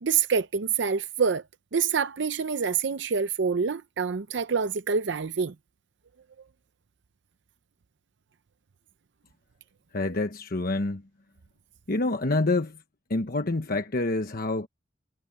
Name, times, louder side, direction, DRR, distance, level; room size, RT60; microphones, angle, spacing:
voice 1, 0.0-1.4 1.7-5.5, right 6 dB, 70° right, 0.6 m, -26 dB
voice 2, 9.9-11.0 11.9-12.8 13.1-14.7, left 2 dB, 55° left, 1.1 m, -27 dB
head